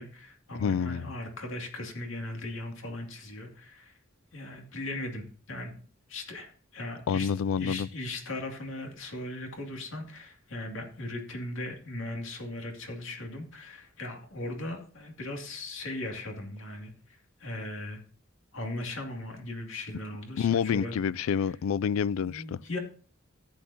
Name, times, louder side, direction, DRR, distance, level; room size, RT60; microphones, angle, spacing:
voice 1, 0.0-4.0 4.3-5.7 6.1-7.3 7.6-18.0 18.5-21.0 21.3-21.5 22.2-22.8, left 1 dB, 65° left, 2.5 m, -38 dB
voice 2, 0.6-1.1 7.1-7.9 20.4-22.6, left 7 dB, 80° left, 0.3 m, -28 dB
14.0 x 9.5 x 2.9 m
head